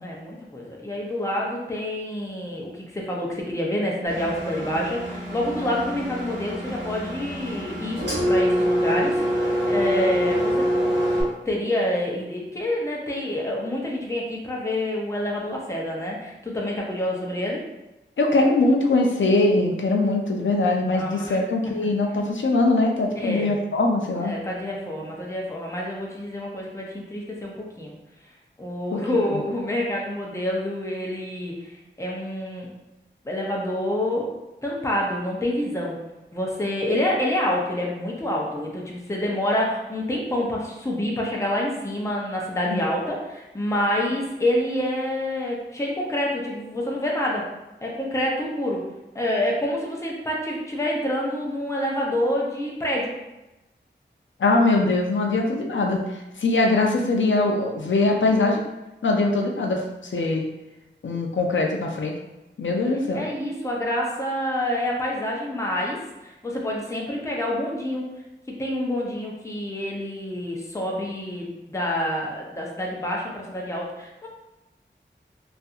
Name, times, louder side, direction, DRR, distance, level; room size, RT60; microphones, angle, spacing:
voice 1, 0.0-8.0 8.3-10.7 11.5-17.6 20.9-21.4 23.2-23.5 24.2-28.0 28.6-32.7 33.2-34.3 34.6-36.0 36.3-47.4 47.8-48.9 49.1-53.1 63.1-68.1 68.5-74.3, left 1 dB, 15° left, -3 dB, 0.6 m, -27 dB
Engine, 4.1-11.2, equal, 65° right, 1.2 m, -25 dB
voice 2, 18.2-24.3 28.9-29.0 29.3-29.4 42.6-42.8 54.4-58.6 59.0-60.4 61.0-62.1 62.6-63.3, left 2 dB, 80° left, 1 dB, 0.5 m, -22 dB
2.6 x 2.5 x 2.4 m, 1.0 s
wide cardioid pair, 55°, 20 cm